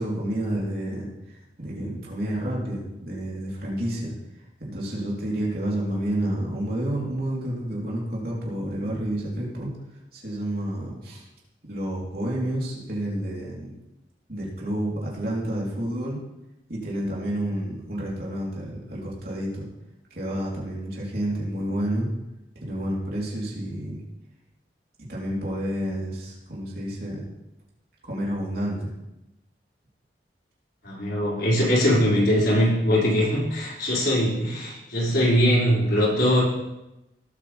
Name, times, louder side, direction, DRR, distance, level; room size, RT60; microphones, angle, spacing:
voice 1, 0.0-4.1 4.6-9.7 10.1-11.3 11.7-13.7 14.3-16.2 16.7-19.7 20.1-22.1 22.6-24.0 25.0-27.2 28.0-28.9, right 1 dB, 55° right, -5 dB, 3.9 m, -30 dB
voice 2, 30.8-36.4, equal, 70° left, -7 dB, 5.6 m, -21 dB
18.5 x 8.6 x 3.6 m, 0.93 s
head